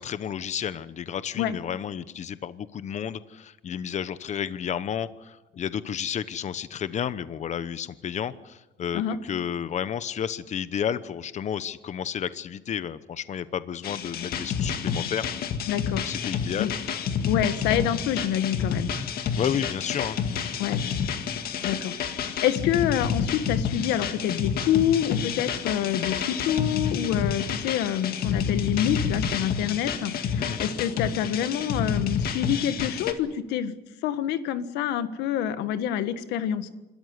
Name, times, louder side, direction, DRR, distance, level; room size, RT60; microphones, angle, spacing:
voice 1, 0.0-15.3 16.1-16.7 19.0-20.6 30.3-30.6, left 8 dB, 45° left, 14 dB, 1.0 m, -32 dB
sound 1, 13.8-33.1, left 7 dB, 65° left, 2.0 m, -29 dB
voice 2, 15.7-16.0 16.6-16.7 17.3-18.9 20.6-20.8 21.6-33.7 34.0-36.7, left 10 dB, 90° left, 11 dB, 1.5 m, -27 dB
26.5 x 13.5 x 9.8 m, 1.0 s
cardioid pair, 110°, 17 cm